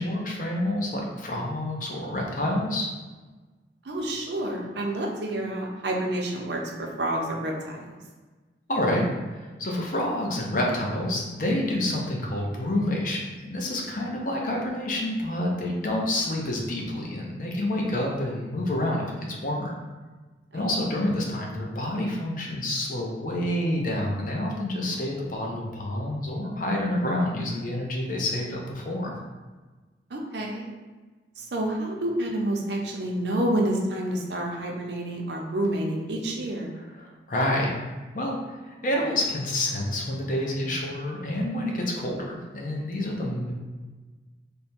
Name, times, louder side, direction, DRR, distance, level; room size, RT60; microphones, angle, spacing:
voice 1, 0.0-2.9 8.7-19.8 20.5-29.1 36.7-37.7 38.1-43.5, left 1 dB, 50° left, -1 dB, 0.7 m, -28 dB
voice 2, 3.8-7.8 20.5-20.9 30.1-30.7 31.4-36.7, right 1 dB, 75° right, 0 dB, 0.6 m, -29 dB
3.4 x 2.2 x 4.2 m, 1.3 s
head